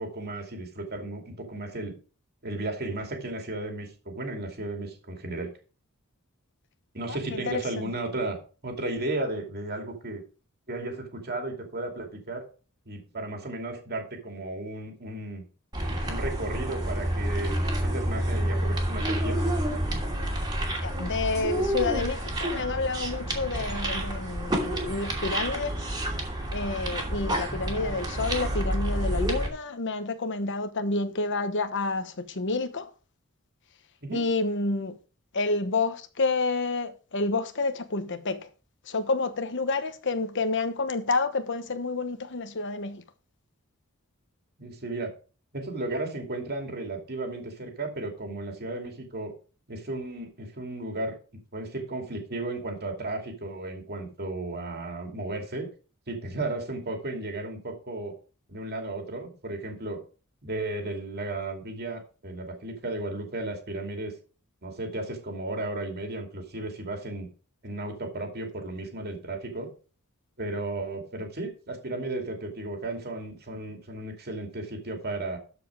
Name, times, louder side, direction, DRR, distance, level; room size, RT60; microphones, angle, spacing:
voice 1, 0.0-2.0 2.4-5.5 6.9-10.2 10.7-12.4 12.9-15.4 16.1-19.5 34.0-34.3 44.6-45.1 45.5-49.3 49.7-51.2 51.5-55.7 56.1-58.1 58.5-60.0 60.4-64.1 64.6-67.3 67.6-69.7 70.4-75.4, right 2 dB, 45° right, 2.6 m, -34 dB
voice 2, 7.1-7.6 20.8-25.8 26.5-32.9 34.1-35.0 35.3-38.5 38.9-43.0, left 3 dB, 55° left, 1.1 m, -29 dB
sound 1, 15.7-29.5, right 1 dB, 20° right, 2.7 m, -29 dB
12.5 x 5.2 x 4.9 m
head